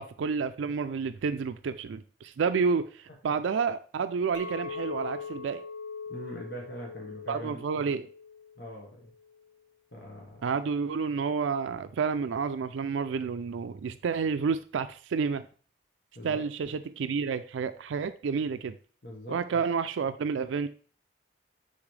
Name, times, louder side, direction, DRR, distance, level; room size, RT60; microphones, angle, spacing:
voice 1, 0.0-5.6 7.3-8.1 10.4-15.5 16.2-18.7 19.3-20.7, right 5 dB, 90° right, 11 dB, 0.4 m, -30 dB
Chink clink, 4.3-8.7 9.0-9.5, left 5 dB, 75° left, 1.1 m, -41 dB
voice 2, 6.1-7.8 8.6-9.1 9.9-10.4 16.1-16.4 19.0-19.6, equal, 60° left, -3 dB, 1.5 m, -42 dB
9.6 x 4.0 x 3.3 m, 0.42 s
head